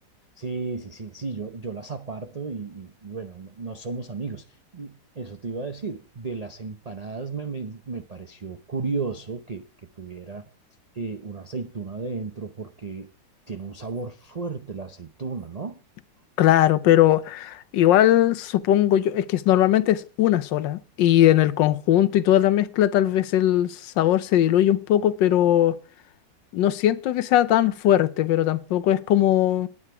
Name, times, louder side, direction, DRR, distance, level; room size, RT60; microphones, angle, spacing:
voice 1, 0.4-9.6 10.0-10.5 10.9-13.1 13.5-15.8, right 4 dB, 85° right, 0.3 m, -34 dB
voice 2, 16.4-25.7 26.5-29.7, left 12 dB, 85° left, 1.4 m, -20 dB
9.8 x 9.5 x 4.7 m
omnidirectional pair, 1.9 m